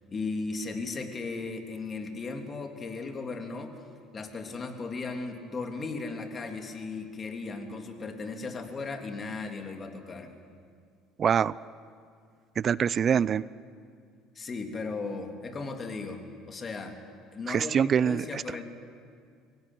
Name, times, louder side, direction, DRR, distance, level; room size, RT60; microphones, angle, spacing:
voice 1, 0.1-3.7 4.1-10.3 14.3-17.0 17.3-18.6, left 3 dB, 35° left, 4 dB, 3.1 m, -36 dB
voice 2, 11.2-11.6 12.6-13.4 17.5-18.6, right 7 dB, 45° right, 20 dB, 0.5 m, -25 dB
23.5 x 17.5 x 9.3 m, 2.2 s
hypercardioid pair, 70°, 0 cm